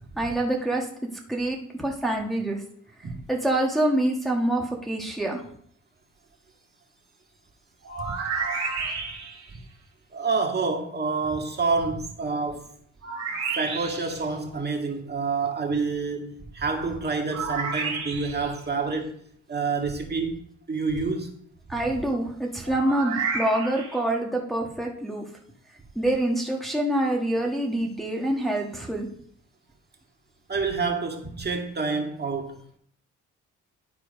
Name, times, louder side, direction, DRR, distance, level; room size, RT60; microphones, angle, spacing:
voice 1, 0.1-0.9 1.3-2.6 3.0-5.4 21.7-25.3 25.9-29.1, right 1 dB, ahead, 1.6 m, -26 dB
sound 1, 7.8-9.5 13.0-14.2 17.3-18.5 22.7-24.0, right 5 dB, 60° right, 2.5 m, -31 dB
voice 2, 10.1-12.7 13.6-19.2 19.5-21.3 30.5-32.8, right 4 dB, 35° right, 1.9 m, -28 dB
11.0 x 4.5 x 5.2 m
cardioid pair, 90°, 30 cm